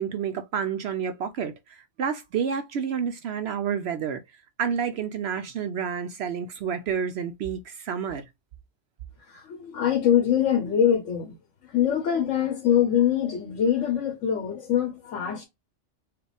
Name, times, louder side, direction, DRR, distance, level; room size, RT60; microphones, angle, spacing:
voice 1, 0.0-4.2 4.6-8.2, right 7 dB, 65° right, 0.7 m, -29 dB
voice 2, 9.2-11.4 11.6-15.4, left 9 dB, 85° left, 1.2 m, -24 dB
4.8 x 2.2 x 3.3 m
omnidirectional pair, 1.3 m